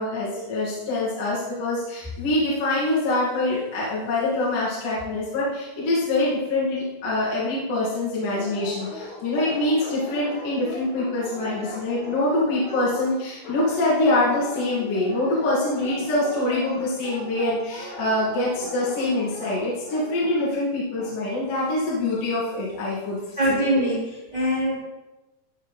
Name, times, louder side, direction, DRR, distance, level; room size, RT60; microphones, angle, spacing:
voice 1, 0.0-23.6, left 2 dB, 50° left, -8 dB, 3.3 m, -25 dB
Dog, 8.3-20.5, left 2 dB, 80° left, 5.2 m, -38 dB
voice 2, 23.4-24.7, equal, 10° right, -9 dB, 2.3 m, -23 dB
13.0 x 6.4 x 3.3 m, 1.0 s
omnidirectional pair, 5.5 m